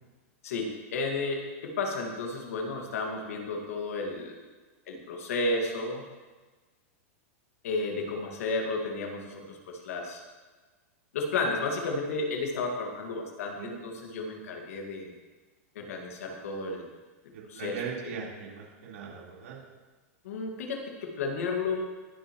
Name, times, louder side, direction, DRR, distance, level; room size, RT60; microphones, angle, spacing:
voice 1, 0.4-4.4 4.9-6.0 7.6-10.2 11.1-15.1 15.8-16.9 17.5-17.8 20.2-21.8, left 3 dB, 80° left, 1 dB, 1.9 m, -32 dB
voice 2, 17.3-19.6, right 6 dB, 80° right, -5 dB, 4.0 m, -39 dB
21.5 x 7.5 x 3.1 m, 1.3 s
supercardioid pair, 180°, 8 cm